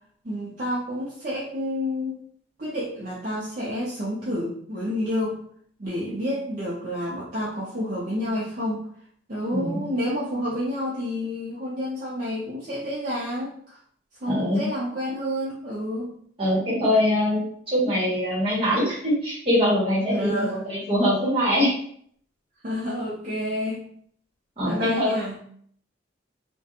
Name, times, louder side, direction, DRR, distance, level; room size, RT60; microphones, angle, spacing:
voice 1, 0.2-2.2 2.6-5.4 5.8-8.9 9.3-13.8 14.2-16.1 20.1-20.5 22.6-23.9 24.6-25.4, left 1 dB, 45° right, -7 dB, 0.5 m, -29 dB
voice 2, 14.3-14.6 16.4-21.7 24.6-25.1, equal, 30° right, -7 dB, 1.1 m, -23 dB
2.4 x 2.2 x 2.7 m, 0.62 s
head